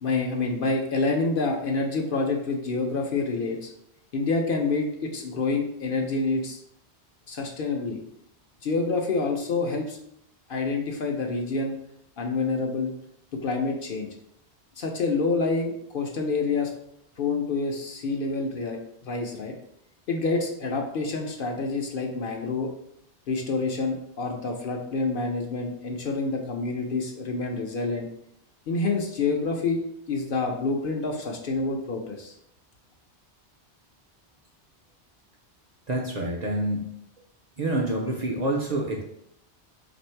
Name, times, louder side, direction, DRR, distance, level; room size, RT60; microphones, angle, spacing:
voice 1, 0.0-3.7 4.1-6.6 7.3-8.0 8.6-10.0 10.5-11.7 12.2-12.9 13.3-14.1 14.8-16.7 17.2-19.5 20.1-22.7 23.3-28.1 28.7-29.8 30.1-32.3, left 3 dB, 60° left, 1 dB, 0.7 m, -27 dB
voice 2, 35.9-36.9 37.6-39.0, right 1 dB, 50° right, -1 dB, 0.5 m, -27 dB
3.4 x 2.6 x 4.3 m, 0.72 s
omnidirectional pair, 1.1 m